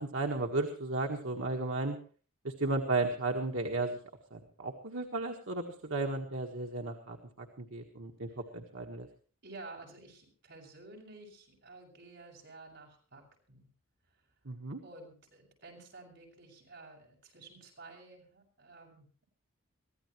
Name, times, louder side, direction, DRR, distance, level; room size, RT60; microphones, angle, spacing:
voice 1, 0.0-2.0 2.4-4.0 4.3-9.1 14.4-14.8, right 2 dB, 75° right, 1 dB, 1.6 m, -34 dB
voice 2, 9.4-13.7 14.1-14.2 14.8-19.3, right 2 dB, 55° right, 0 dB, 7.1 m, -52 dB
23.5 x 15.5 x 3.1 m, 0.40 s
head